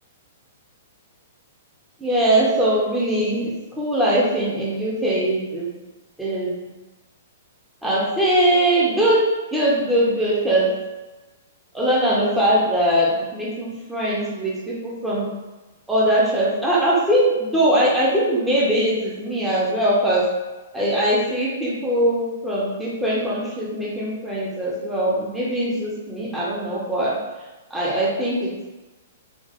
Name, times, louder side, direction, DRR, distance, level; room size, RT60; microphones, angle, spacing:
voice 1, 2.0-5.7 6.2-6.8 7.8-9.2 9.5-10.7 11.7-15.3 15.9-20.2 20.7-27.1 27.7-28.7, right 1 dB, 5° right, -7 dB, 1.0 m, -21 dB
3.8 x 2.6 x 2.6 m, 1.1 s
figure-of-eight pair, 110°, 0 cm